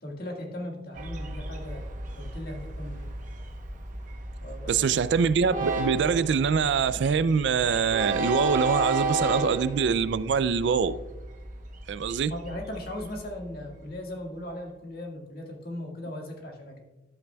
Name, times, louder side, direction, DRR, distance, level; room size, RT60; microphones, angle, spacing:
voice 1, 0.0-1.9 2.2-3.1 4.4-5.0 12.3-16.8, left 1 dB, 55° left, 1.8 m, -38 dB
Train, 1.0-13.9, right 2 dB, 45° right, 0.9 m, -33 dB
voice 2, 4.7-10.9 11.9-12.3, right 6 dB, 75° right, 0.3 m, -24 dB
12.0 x 8.4 x 2.3 m
head